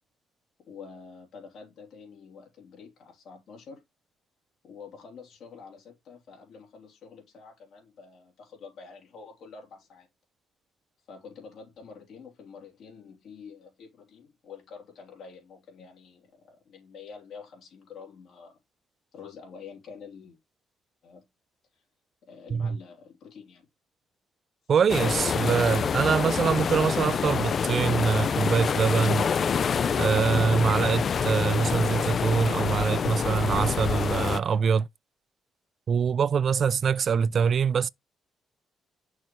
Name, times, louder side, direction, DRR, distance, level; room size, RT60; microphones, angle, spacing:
voice 1, 0.6-3.8 4.6-10.1 11.1-18.6 19.1-20.4 21.0-21.3 21.7-21.8 22.2-23.7, left 5 dB, 70° left, 3.0 m, -47 dB
voice 2, 24.7-29.3 29.9-34.9 35.9-37.9, right 6 dB, 50° right, 0.3 m, -24 dB
sound 1, 24.9-34.4, left 6 dB, 50° left, 0.4 m, -26 dB
6.3 x 3.1 x 5.3 m
cardioid pair, 90°, 0 cm